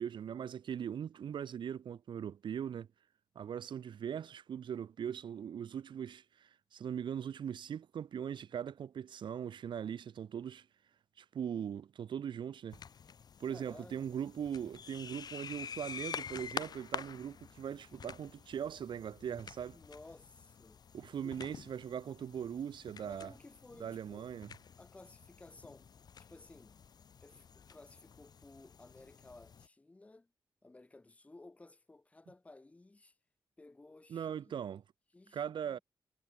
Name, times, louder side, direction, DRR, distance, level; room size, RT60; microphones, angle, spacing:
voice 1, 0.0-2.9 3.3-10.7 11.2-12.8 13.4-19.8 20.9-23.3 23.8-24.5 34.1-34.8 35.3-35.8, right 8 dB, 85° right, 2.5 m, -40 dB
sound 1, 12.7-29.7, left 7 dB, 60° left, 4.0 m, -48 dB
voice 2, 13.5-14.2 19.7-20.8 21.2-21.4 23.0-24.3 24.8-25.9 26.2-26.8 27.2-30.3 30.6-33.2 33.6-34.7 35.1-35.8, left 2 dB, 15° left, 6.7 m, -56 dB
wide cardioid pair, 170°, 8 cm